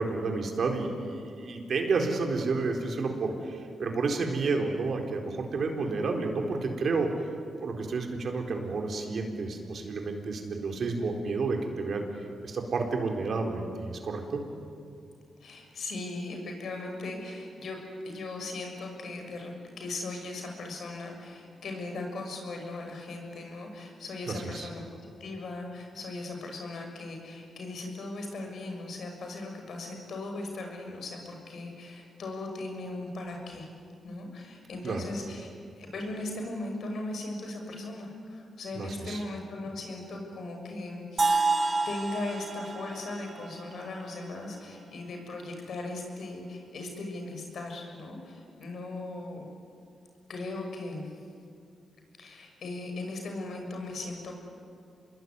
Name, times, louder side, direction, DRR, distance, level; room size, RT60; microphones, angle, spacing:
voice 1, 0.0-7.1 7.6-12.0 12.4-14.4 24.3-24.7 34.8-35.0 38.7-39.2, right 3 dB, 65° right, 3 dB, 4.3 m, -30 dB
voice 2, 15.4-17.8 18.0-33.7 34.0-35.5 35.8-49.5 50.3-51.2 52.2-54.3, left 2 dB, 70° left, 3 dB, 6.6 m, -38 dB
sound 1, 41.2-45.1, right 3 dB, 35° right, 4.5 m, -30 dB
27.0 x 21.5 x 9.7 m, 2.4 s
cardioid pair, 70°, 0 cm